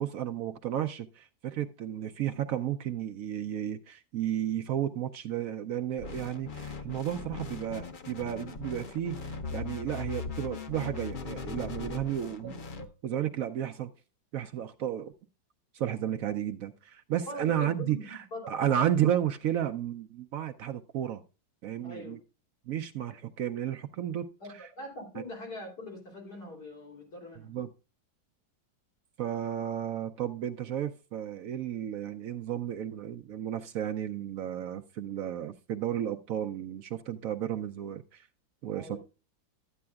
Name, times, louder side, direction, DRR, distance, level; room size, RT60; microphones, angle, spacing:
voice 1, 0.0-12.5 13.0-13.9 14.3-15.1 15.7-21.2 21.6-22.2 22.7-24.3 27.4-27.7 29.2-38.3 38.6-39.0, right 10 dB, 70° right, 0.8 m, -33 dB
sound 1, 6.0-12.9, left 5 dB, 90° left, 0.4 m, -39 dB
voice 2, 12.4-12.9 17.3-18.5 21.8-22.2 24.4-27.5 38.7-39.0, left 1 dB, 60° left, 3.8 m, -42 dB
12.5 x 8.6 x 2.3 m
omnidirectional pair, 2.0 m